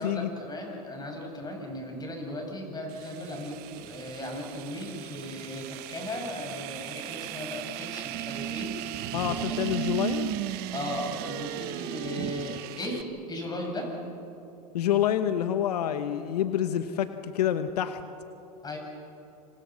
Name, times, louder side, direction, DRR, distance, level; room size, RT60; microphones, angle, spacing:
voice 1, 0.0-9.8 10.7-13.0 13.3-13.9 18.6-18.8, left 1 dB, 20° left, 1 dB, 7.7 m, -37 dB
sound 1, 2.9-13.0, right 12 dB, 50° right, 1.2 m, -36 dB
voice 2, 9.1-10.3 14.7-18.0, left 10 dB, 80° left, 9 dB, 1.2 m, -27 dB
28.5 x 26.5 x 6.4 m, 2.8 s
hypercardioid pair, 105°, 20 cm